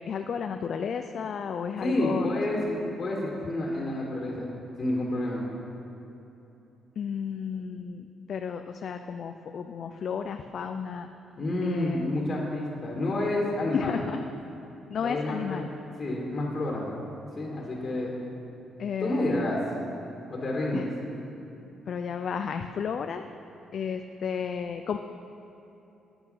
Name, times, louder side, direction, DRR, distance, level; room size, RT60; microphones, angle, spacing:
voice 1, 0.1-2.3 7.0-11.1 11.6-12.1 13.7-14.2 14.9-15.7 18.8-19.6 20.7-20.9 21.9-23.2 23.7-25.0, left 6 dB, 55° left, 7 dB, 0.4 m, -33 dB
voice 2, 1.8-4.5 4.8-5.4 11.4-14.0 15.0-15.6 16.0-16.9 17.4-18.1 19.0-19.6 20.3-20.9, left 1 dB, 40° left, -3 dB, 1.9 m, -29 dB
8.8 x 8.3 x 5.5 m, 3.0 s
cardioid pair, 90°, 0 cm